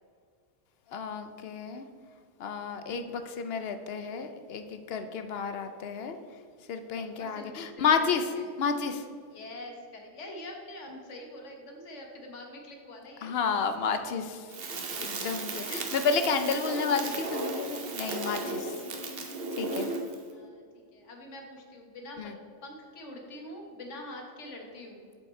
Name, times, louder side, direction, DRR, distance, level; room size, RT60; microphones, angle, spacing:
voice 1, 0.9-1.8 2.4-6.2 6.7-8.3 8.6-9.0 13.2-14.5 14.9-18.8 19.6-19.9 22.2-22.3, left 5 dB, 65° left, 8 dB, 0.7 m, -31 dB
voice 2, 7.2-8.5 9.3-13.3 20.3-20.6 20.9-22.3 22.6-25.1, left 1 dB, 85° left, 2 dB, 1.5 m, -45 dB
Crackle, 14.5-20.2, right 3 dB, 55° right, 1.0 m, -35 dB
7.2 x 5.5 x 4.3 m, 2.1 s
omnidirectional pair, 1.2 m